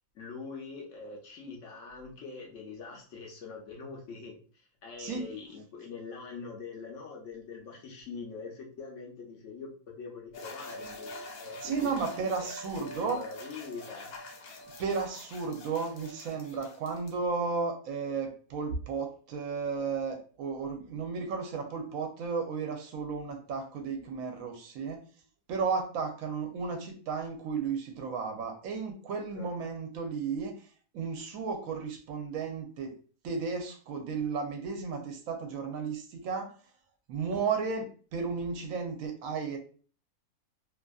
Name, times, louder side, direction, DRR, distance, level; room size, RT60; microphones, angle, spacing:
voice 1, 0.1-11.9 13.0-14.1 29.3-29.5, left 4 dB, 65° left, -1 dB, 0.9 m, -43 dB
sound 1, 10.3-17.1, left 1 dB, 85° left, 1.1 m, -45 dB
voice 2, 11.6-13.2 14.8-25.0 25.5-30.7 30.9-32.9 33.2-36.5 37.1-39.6, right 5 dB, 70° right, 4 dB, 0.9 m, -34 dB
2.7 x 2.4 x 2.3 m, 0.41 s
omnidirectional pair, 1.6 m